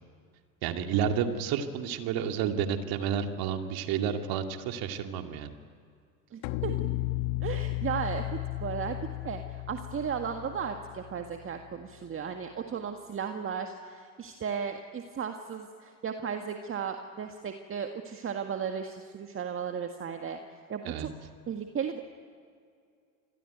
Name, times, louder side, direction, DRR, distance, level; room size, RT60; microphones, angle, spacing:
voice 1, 0.6-5.5 20.8-21.1, right 8 dB, 55° right, 5 dB, 2.5 m, -30 dB
voice 2, 6.3-6.7 7.4-9.0 9.2-20.4 20.7-21.1 21.5-22.0, right 7 dB, 30° right, 5 dB, 1.8 m, -35 dB
sound 1, 6.4-11.7, left 17 dB, 60° left, 1.3 m, -34 dB
28.0 x 21.5 x 9.4 m, 2.3 s
hypercardioid pair, 75°, 44 cm